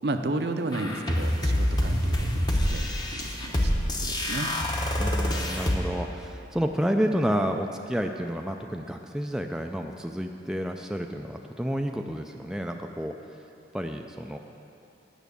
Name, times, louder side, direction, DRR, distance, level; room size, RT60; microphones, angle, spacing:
voice 1, 0.0-4.5, right 2 dB, 60° right, 6 dB, 0.6 m, -33 dB
sound 1, 0.7-5.8, left 1 dB, 20° left, 0.8 m, -26 dB
voice 2, 5.0-13.1 13.7-14.4, equal, 5° right, 3 dB, 0.3 m, -30 dB
9.1 x 6.1 x 8.2 m, 2.7 s
head